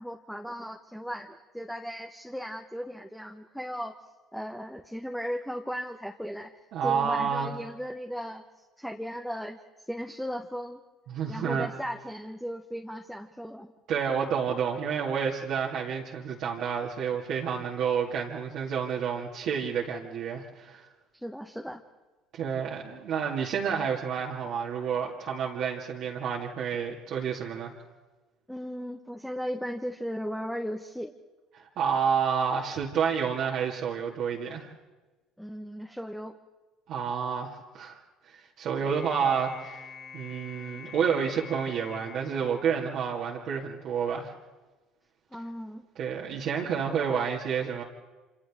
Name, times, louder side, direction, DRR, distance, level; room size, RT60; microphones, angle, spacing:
voice 1, 0.0-3.9 4.3-8.4 8.8-9.6 9.9-10.8 11.3-13.7 21.2-21.8 28.5-31.1 35.4-36.4 45.3-45.8, equal, ahead, 4 dB, 1.3 m, -36 dB
voice 2, 6.7-7.5 11.1-11.7 13.9-20.8 22.3-27.7 31.5-34.7 36.9-38.0 38.2-39.8 40.1-44.3 46.0-47.8, right 7 dB, 65° right, -4 dB, 2.2 m, -29 dB
sound 1, 38.8-43.3, left 5 dB, 50° left, 3.7 m, -46 dB
29.5 x 26.0 x 3.7 m, 1.2 s
hypercardioid pair, 70°, 0 cm